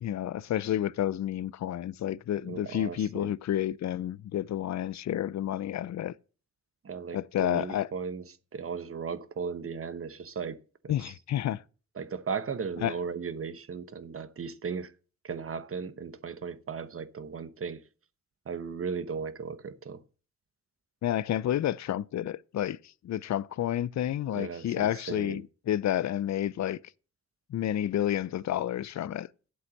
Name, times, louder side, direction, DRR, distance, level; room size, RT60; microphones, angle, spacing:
voice 1, 0.0-6.1 7.1-7.9 10.9-11.6 12.8-12.9 21.0-22.8 23.0-26.8 27.5-29.3, left 11 dB, 65° left, 0.5 m, -30 dB
voice 2, 2.4-3.3 6.8-8.2 8.5-11.1 12.0-14.9 15.2-17.8 18.5-20.0 24.3-25.4, right 6 dB, 50° right, 1.0 m, -36 dB
8.7 x 8.0 x 6.4 m
cardioid pair, 75°, 30 cm